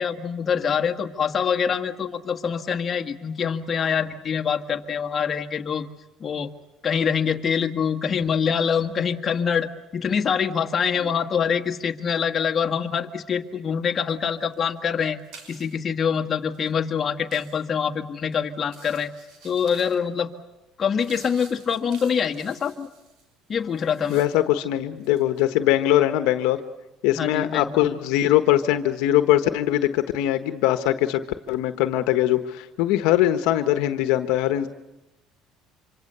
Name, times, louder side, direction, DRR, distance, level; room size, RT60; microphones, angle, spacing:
voice 1, 0.0-5.9 6.2-6.5 6.8-15.2 15.5-19.1 19.4-20.3 20.8-22.9 23.5-24.2 27.1-28.0, left 7 dB, 35° left, 4 dB, 1.8 m, -25 dB
sound 1, 13.5-13.8 14.1-15.9 16.4-16.7 17.3-17.6 18.2-18.4 18.6-20.2 20.6-24.6 24.9-25.5, right 4 dB, 70° right, 5.8 m, -50 dB
voice 2, 24.1-26.6 27.0-31.2 31.5-34.7, left 13 dB, 80° left, 9 dB, 1.3 m, -21 dB
26.0 x 25.5 x 6.9 m, 0.99 s
supercardioid pair, 105°, 0 cm